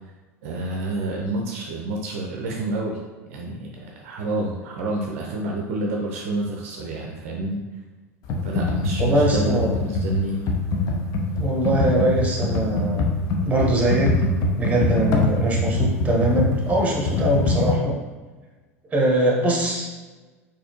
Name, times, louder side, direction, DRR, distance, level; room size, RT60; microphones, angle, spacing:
voice 1, 0.4-3.0 3.3-7.6 8.4-10.4, right 1 dB, 65° right, 0 dB, 0.5 m, -28 dB
Computer keyboard, 8.2-17.7, left 2 dB, 50° left, 0.6 m, -23 dB
voice 2, 9.0-9.7 11.4-13.1 13.4-14.2 14.6-17.9 18.9-19.9, right 1 dB, 20° right, -2 dB, 1.1 m, -22 dB
4.0 x 2.6 x 3.0 m, 1.3 s
figure-of-eight pair, 75°, 8 cm